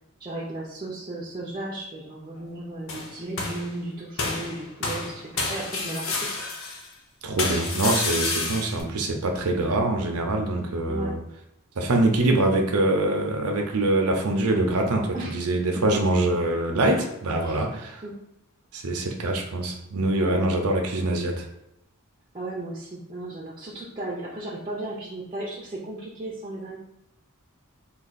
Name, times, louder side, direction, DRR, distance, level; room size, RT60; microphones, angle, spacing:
voice 1, 0.2-6.1 10.9-11.1 15.1-15.4 17.4-17.6 18.0-18.2 20.2-20.5 22.3-26.8, right 1 dB, 20° right, -5 dB, 0.6 m, -35 dB
sound 1, 2.9-3.7 4.2-6.9 7.4-8.8, left 3 dB, 60° left, 0.7 m, -29 dB
voice 2, 7.2-11.2 11.8-18.0 18.7-21.5, right 2 dB, 75° right, 2 dB, 0.6 m, -24 dB
3.4 x 2.4 x 4.0 m, 0.85 s
head